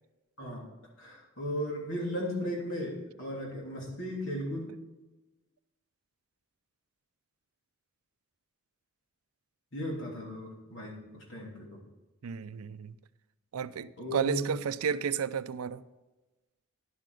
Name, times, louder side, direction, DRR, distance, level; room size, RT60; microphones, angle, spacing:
voice 1, 1.0-4.8 9.7-11.8 14.0-14.5, equal, 60° left, 3.2 m, -36 dB
voice 2, 12.2-12.9 13.5-15.8, right 7 dB, 80° right, 0.4 m, -32 dB
11.0 x 7.7 x 4.9 m
head